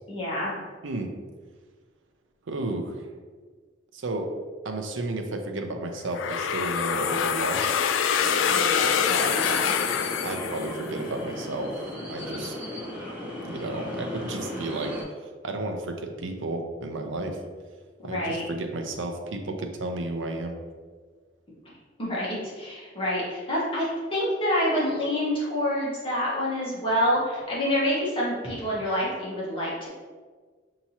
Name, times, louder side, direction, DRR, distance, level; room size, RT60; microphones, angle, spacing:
voice 1, 0.1-0.5 8.4-9.7 18.0-18.4 22.0-29.9, equal, 30° left, -7 dB, 1.3 m, -27 dB
voice 2, 2.5-3.1 3.9-4.3 4.6-7.8 10.2-11.8 12.1-12.5 13.4-15.0 15.4-17.4 18.0-20.6, right 2 dB, 85° right, 4 dB, 0.6 m, -32 dB
sound 1, 6.2-11.1, left 7 dB, 80° left, 0.3 m, -25 dB
sound 2, 8.2-15.0, left 1 dB, 10° right, 1.0 m, -36 dB
5.8 x 2.9 x 2.8 m, 1.5 s
head